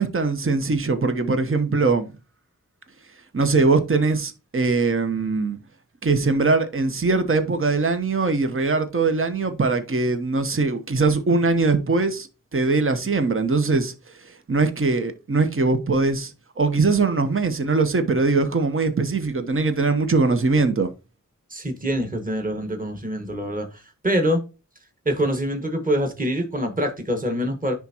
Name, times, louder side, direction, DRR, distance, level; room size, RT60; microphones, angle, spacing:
voice 1, 0.0-2.1 3.3-5.6 6.0-12.3 12.5-13.9 14.5-20.9, right 3 dB, 40° right, 1.0 m, -21 dB
voice 2, 21.5-24.4 25.1-27.7, equal, 25° right, 1.8 m, -25 dB
10.0 x 3.6 x 2.9 m
wide cardioid pair, 65°, 32 cm